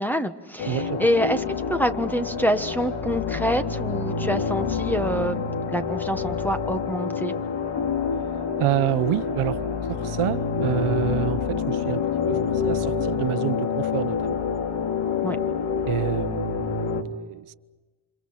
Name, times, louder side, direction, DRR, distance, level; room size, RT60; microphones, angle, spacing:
voice 1, 0.0-1.4 1.7-5.4 5.7-7.4 15.2-15.4, equal, 5° left, 1.3 m, -26 dB
sound 1, 0.6-17.0, left 6 dB, 70° left, 2.7 m, -27 dB
voice 2, 0.7-1.1 8.6-9.6 9.9-12.0 12.3-14.4 15.9-17.5, right 13 dB, 80° right, 0.9 m, -27 dB
29.0 x 27.5 x 5.7 m
cardioid pair, 125°, 50 cm